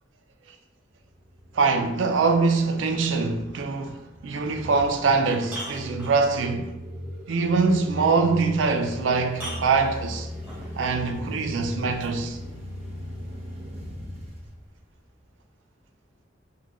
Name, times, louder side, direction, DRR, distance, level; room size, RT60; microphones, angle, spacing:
sound 1, 0.9-15.3, equal, 35° right, 0.9 m, -39 dB
voice 1, 1.5-6.7 7.3-10.3 10.7-12.4, right 4 dB, 90° right, 0.4 m, -23 dB
sound 2, 5.0-6.5 8.5-8.6 9.3-10.6 12.0-12.1, right 1 dB, 10° right, 1.2 m, -39 dB
4.0 x 2.2 x 3.0 m
head